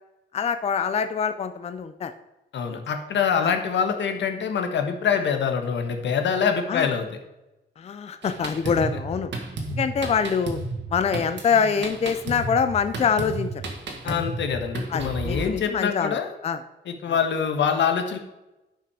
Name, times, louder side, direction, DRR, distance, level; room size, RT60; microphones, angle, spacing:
voice 1, 0.3-2.1 2.7-2.8 3.4-3.6 6.7-6.9 7.8-9.3 9.7-10.6 10.9-13.5 14.1-14.2 14.9-16.6 17.1-17.2, left 6 dB, 35° left, 10 dB, 0.4 m, -25 dB
voice 2, 2.5-7.1 14.0-16.3 16.8-18.2, left 7 dB, 85° left, 6 dB, 1.3 m, -25 dB
Drum kit, 8.2-15.4, right 2 dB, 85° right, 1.9 m, -33 dB
10.5 x 5.9 x 4.9 m, 0.99 s
wide cardioid pair, 160°, 18 cm